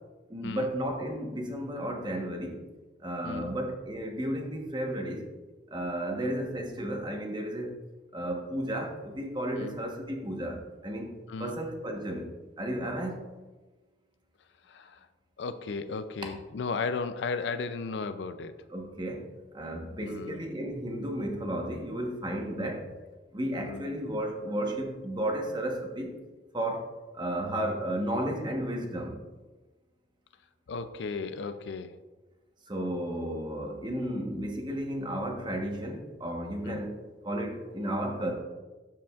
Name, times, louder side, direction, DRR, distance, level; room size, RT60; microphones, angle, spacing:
voice 1, 0.3-2.6 3.0-5.3 5.7-7.7 8.1-11.1 11.4-12.3 12.6-13.2 18.7-19.3 19.5-22.9 23.3-26.2 26.5-29.2 32.7-37.0 37.2-38.3, right 1 dB, 25° right, 1 dB, 1.1 m, -33 dB
voice 2, 3.2-3.5 6.1-6.2 9.6-9.8 11.3-11.5 14.7-15.0 15.4-18.5 20.0-20.4 22.6-22.7 23.6-23.9 30.7-32.0 36.6-36.9, left 4 dB, 70° left, 11 dB, 0.4 m, -35 dB
12.5 x 5.0 x 2.4 m, 1.2 s
head